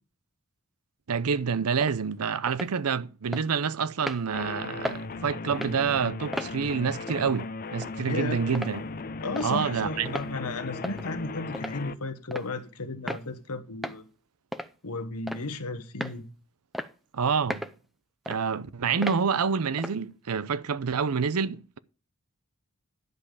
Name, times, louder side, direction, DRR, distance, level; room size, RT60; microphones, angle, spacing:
voice 1, 1.1-8.8 9.4-10.2 17.1-17.7 18.3-21.8, right 6 dB, 75° right, 0.6 m, -27 dB
sound 1, 1.8-2.0 2.5-2.7 3.3-3.5 4.0-4.2 4.8-5.0 5.5-5.8 6.3-6.5 7.1-7.3 7.8-7.9 8.5-8.8 9.4-9.5 10.1-10.3 10.8-11.1 11.5-11.8 12.3-12.5 13.1-13.3 13.8-14.0 14.5-14.7 15.3-15.5 16.0-16.2 16.7-16.9 17.5-17.8 18.3-18.4 19.0-19.2 19.8-20.0, equal, ahead, 0.6 m, -35 dB
sound 2, 4.3-11.9, left 3 dB, 40° left, 0.6 m, -37 dB
voice 2, 8.1-8.4 9.2-14.0 14.8-16.2, left 3 dB, 80° left, 1.2 m, -34 dB
11.0 x 5.4 x 6.5 m
head